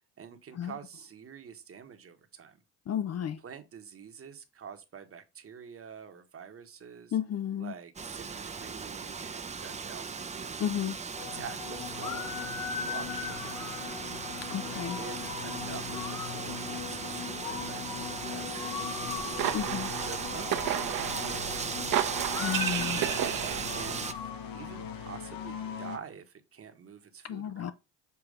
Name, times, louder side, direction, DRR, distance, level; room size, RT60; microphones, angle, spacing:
voice 1, 0.2-2.6 3.4-7.1 7.6-10.6 11.3-13.9 15.0-19.5 20.1-21.8 22.4-23.3 23.7-24.1 24.5-27.7, right 7 dB, 35° right, 1.3 m, -47 dB
voice 2, 2.9-3.4 7.1-7.7 10.6-11.0 14.5-15.0 19.5-19.9 22.4-23.0 27.2-27.7, left 9 dB, 40° left, 0.6 m, -32 dB
Wind, 8.0-24.1, right 5 dB, 20° right, 0.6 m, -38 dB
sound 1, 11.2-26.0, left 8 dB, 60° left, 1.4 m, -39 dB
sound 2, 19.0-24.0, right 11 dB, 55° right, 1.0 m, -33 dB
7.0 x 2.9 x 5.0 m
supercardioid pair, 80°, 38 cm